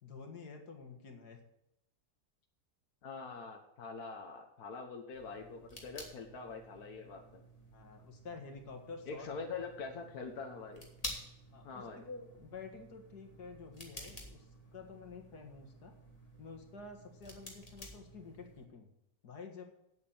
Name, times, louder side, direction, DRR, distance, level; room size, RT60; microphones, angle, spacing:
voice 1, 0.0-1.4 7.7-9.3 11.5-15.9 16.4-18.9 19.2-19.6, left 4 dB, 85° left, 4 dB, 2.4 m, -49 dB
voice 2, 3.0-7.4 9.1-10.9 11.6-12.0, left 4 dB, 70° left, 2 dB, 1.7 m, -44 dB
sound 1, 5.1-18.6, left 1 dB, 25° left, 2.5 m, -51 dB
9.3 x 8.5 x 7.1 m, 0.85 s
omnidirectional pair, 1.7 m